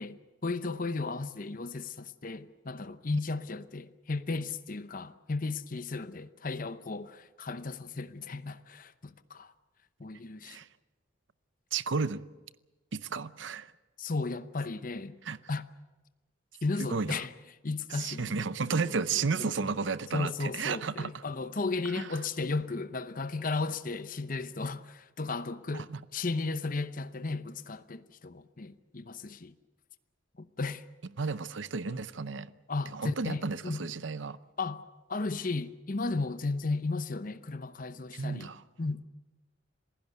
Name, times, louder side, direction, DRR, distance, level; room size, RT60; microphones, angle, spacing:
voice 1, 0.0-9.5 10.0-10.6 14.0-15.2 15.5-15.6 16.6-17.3 17.6-18.5 18.8-19.7 20.1-25.9 26.1-29.5 30.4-30.8 31.8-32.0 32.7-33.9 34.6-34.8 35.1-38.5 38.8-39.0, left 3 dB, 45° left, 0.8 m, -35 dB
voice 2, 11.7-12.2 12.9-13.7 15.2-15.4 16.8-17.2 17.9-21.2 22.0-22.1 25.7-26.0 31.2-32.5 32.9-34.4 38.1-38.6, right 5 dB, 75° right, 0.7 m, -33 dB
27.0 x 16.0 x 8.1 m
head